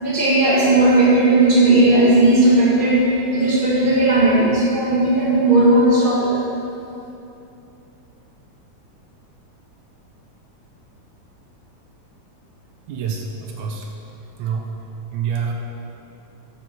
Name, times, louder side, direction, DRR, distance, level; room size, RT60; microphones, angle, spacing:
voice 1, 0.0-3.0 3.3-6.3, right 2 dB, 20° right, -7 dB, 1.6 m, -15 dB
voice 2, 12.9-13.9 14.4-14.7 15.1-15.5, right 6 dB, 80° right, 1 dB, 2.1 m, -26 dB
9.1 x 5.3 x 5.9 m, 2.8 s
omnidirectional pair, 3.5 m